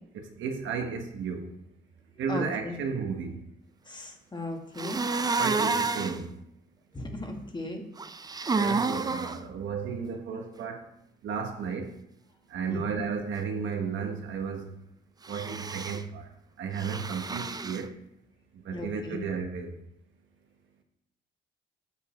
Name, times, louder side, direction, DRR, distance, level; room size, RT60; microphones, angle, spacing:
voice 1, 0.1-1.5 2.2-3.4 5.4-6.3 8.5-10.8 11.2-11.9 12.5-14.7 15.3-16.3 16.6-17.9 18.6-19.8, right 6 dB, 75° right, 4 dB, 1.3 m, -33 dB
voice 2, 2.3-2.8 3.9-5.0 6.9-7.8 12.7-13.0 18.7-19.2, left 2 dB, 20° left, 3 dB, 1.6 m, -37 dB
sound 1, 4.8-6.2 8.0-9.4 15.2-16.0 16.8-17.8, right 4 dB, 20° right, 0.5 m, -30 dB
7.3 x 7.1 x 4.4 m, 0.79 s
cardioid pair, 90°, 20 cm